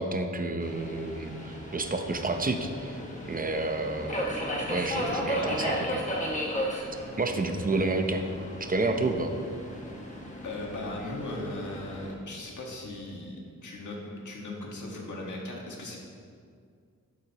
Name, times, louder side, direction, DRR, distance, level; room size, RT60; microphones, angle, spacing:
voice 1, 0.0-3.0 3.3-6.1 7.2-8.2 8.6-9.3, right 2 dB, 30° right, 6 dB, 0.7 m, -30 dB
Subway metro underground, 0.6-12.1, equal, 25° left, 1.4 m, -35 dB
voice 2, 4.9-5.7 10.4-16.0, left 2 dB, 75° left, -1 dB, 1.7 m, -38 dB
11.5 x 7.7 x 3.0 m, 2.2 s
wide cardioid pair, 115°, 30 cm